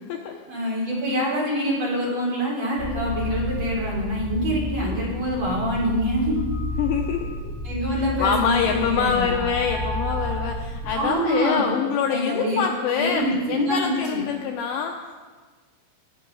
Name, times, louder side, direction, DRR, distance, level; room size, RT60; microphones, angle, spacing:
voice 1, 0.5-6.4 7.6-9.3 10.9-11.7 12.1-12.6 12.9-14.3, equal, 35° right, -4 dB, 4.3 m, -25 dB
sound 1, 2.8-11.0, left 1 dB, 60° left, 4.8 m, -31 dB
voice 2, 6.8-7.5 7.9-15.1, left 7 dB, 80° left, 2 dB, 2.6 m, -25 dB
18.0 x 11.0 x 5.4 m, 1.4 s
omnidirectional pair, 5.7 m